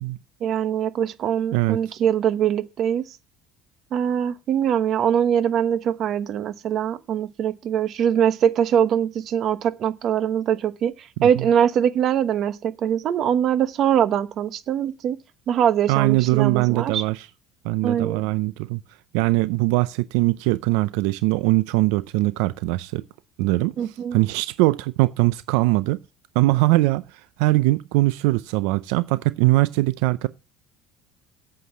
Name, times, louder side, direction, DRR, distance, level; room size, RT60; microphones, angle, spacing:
voice 1, 0.4-3.0 3.9-15.2 15.5-17.0 17.8-18.2 23.8-24.2, right 9 dB, 50° right, 1.1 m, -22 dB
voice 2, 15.9-17.3 17.6-18.8 19.1-23.0 23.4-26.0 26.3-30.3, right 20 dB, 90° right, 0.5 m, -21 dB
8.4 x 7.8 x 7.2 m
cardioid pair, 125°, 0 cm